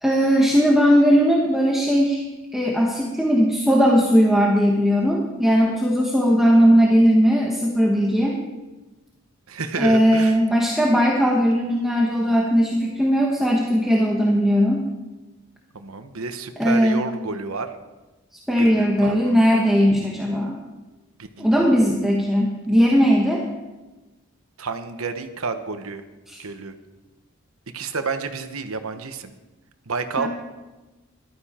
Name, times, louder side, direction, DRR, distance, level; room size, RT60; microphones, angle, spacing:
voice 1, 0.0-2.2 2.5-8.4 9.8-14.8 16.6-17.0 18.5-20.6 21.4-23.4 26.3-26.4 30.2-30.3, equal, ahead, -2 dB, 1.2 m, -18 dB
voice 2, 9.5-10.4 15.7-17.7 18.6-19.4 21.2-21.7 24.6-26.0 26.4-26.8 27.7-29.3 29.9-30.3, right 4 dB, 90° right, 8 dB, 1.1 m, -30 dB
15.0 x 12.5 x 4.4 m, 1.1 s
head